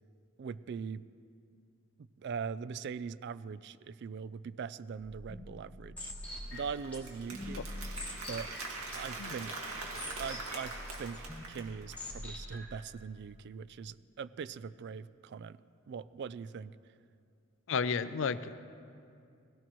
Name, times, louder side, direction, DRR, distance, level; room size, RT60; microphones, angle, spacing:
voice 1, 0.4-1.0 2.2-6.1 6.5-7.7 8.3-8.5 8.9-9.5 10.2-15.6 15.9-16.8, right 6 dB, 55° right, 17 dB, 0.3 m, -41 dB
sound 1, 4.9-12.9, left 1 dB, 5° left, 2.3 m, -45 dB
Applause, 6.3-12.1, right 3 dB, 85° right, 1.9 m, -43 dB
voice 2, 17.7-18.5, left 5 dB, 60° left, 13 dB, 0.4 m, -32 dB
18.0 x 17.0 x 3.1 m, 2.4 s
head